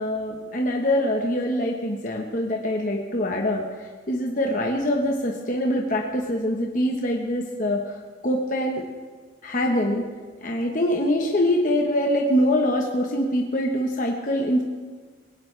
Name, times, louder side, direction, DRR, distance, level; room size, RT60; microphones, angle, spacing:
voice 1, 0.0-8.8 9.4-10.0 10.4-14.6, left 1 dB, 45° left, 0 dB, 1.2 m, -24 dB
20.0 x 17.5 x 3.4 m, 1.5 s
head